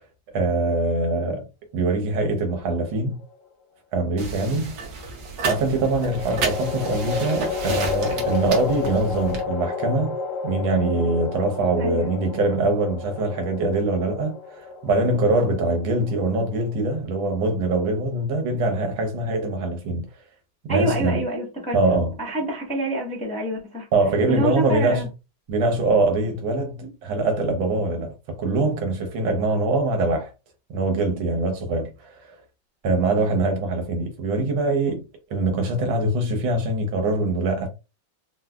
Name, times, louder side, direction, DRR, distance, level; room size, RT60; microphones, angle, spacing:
voice 1, 0.3-1.5 1.7-3.2 3.9-4.8 5.5-10.2 10.4-20.1 20.6-21.2 21.7-22.1 23.9-25.1 25.5-28.1 28.4-30.3 30.7-32.3 32.8-35.0 35.3-37.7, right 2 dB, 85° right, 1.7 m, -23 dB
sound 1, 2.6-3.4 5.7-17.0, left 5 dB, 60° left, 0.9 m, -31 dB
sound 2, 4.2-9.4, right 4 dB, 60° right, 1.3 m, -32 dB
voice 2, 11.8-12.2 20.7-21.8 22.2-23.9 24.3-25.1 26.8-26.9, equal, 5° left, 0.6 m, -27 dB
4.6 x 2.2 x 2.3 m
omnidirectional pair, 2.1 m